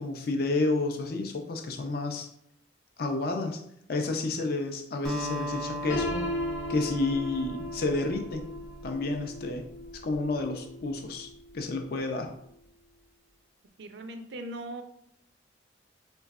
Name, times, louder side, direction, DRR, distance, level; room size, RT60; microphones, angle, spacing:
voice 1, 0.0-2.3 3.0-3.6 3.9-6.2 6.7-8.4 8.8-9.6 10.0-12.3, left 3 dB, 50° left, 4 dB, 0.4 m, -30 dB
Acoustic guitar, 5.0-9.5, equal, ahead, 0.6 m, -38 dB
Piano, 5.9-11.7, left 1 dB, 85° left, 0.8 m, -37 dB
voice 2, 13.8-14.8, right 1 dB, 65° right, 7 dB, 0.4 m, -39 dB
3.4 x 3.0 x 2.4 m, 0.73 s
head